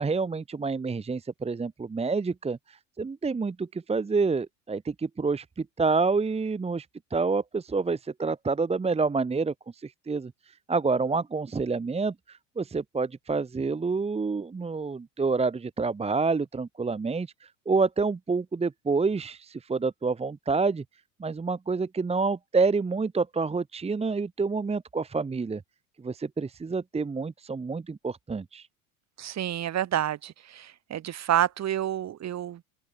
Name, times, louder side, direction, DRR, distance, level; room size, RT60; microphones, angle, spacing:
voice 1, 0.0-10.3 10.7-20.8 21.2-25.6 26.0-28.7, right 4 dB, 15° right, 1.2 m, -28 dB
voice 2, 29.2-32.6, right 11 dB, 40° right, 3.0 m, -29 dB
open air
hypercardioid pair, 75°, 41 cm